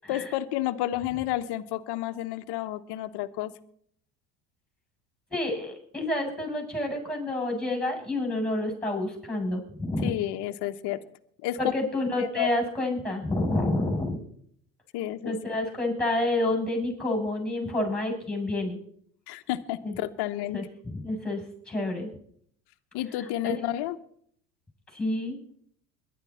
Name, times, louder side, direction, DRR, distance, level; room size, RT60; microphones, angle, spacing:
voice 1, 0.1-3.5 10.0-11.0 11.4-11.6 12.2-12.5 13.9-14.0 14.9-15.6 19.3-20.6 22.9-24.0, left 14 dB, 55° left, 10 dB, 1.3 m, -31 dB
voice 2, 5.3-10.1 11.6-14.2 15.2-18.8 19.8-19.9 20.5-22.1 23.4-23.7 24.9-25.4, left 2 dB, ahead, 3 dB, 7.9 m, -29 dB
21.5 x 11.5 x 4.4 m, 0.65 s
hypercardioid pair, 80°, 48 cm